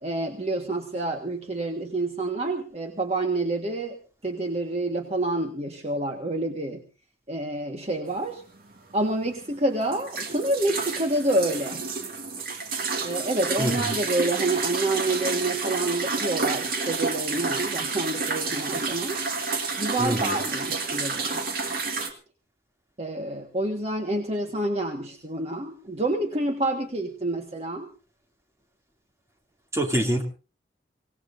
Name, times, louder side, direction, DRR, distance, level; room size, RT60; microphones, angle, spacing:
voice 1, 0.0-4.0 4.2-6.8 7.3-8.4 8.9-11.8 13.0-19.2 19.8-21.5 23.0-27.9, right 2 dB, 35° right, 3 dB, 1.5 m, -28 dB
sound 1, 8.1-8.2 8.7-8.8 9.1-9.5 9.7-22.1, right 4 dB, 55° right, 2.2 m, -29 dB
voice 2, 13.6-14.0 20.0-20.4 29.7-30.2, right 1 dB, 15° right, 1 dB, 2.7 m, -26 dB
25.0 x 18.0 x 2.6 m, 0.34 s
head